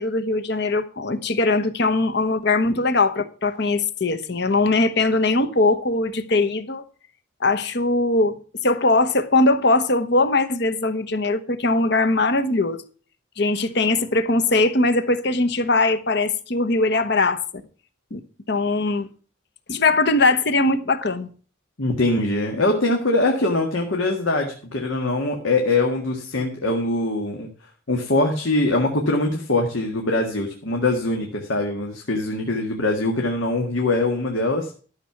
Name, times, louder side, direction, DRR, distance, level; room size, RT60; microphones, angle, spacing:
voice 1, 0.0-6.8 7.4-12.8 13.4-17.4 18.1-18.2 18.5-19.1 19.7-21.3, left 2 dB, 55° left, 1.1 m, -21 dB
voice 2, 21.8-27.5 27.9-34.7, left 2 dB, 80° left, 1.8 m, -22 dB
13.0 x 6.7 x 5.8 m
head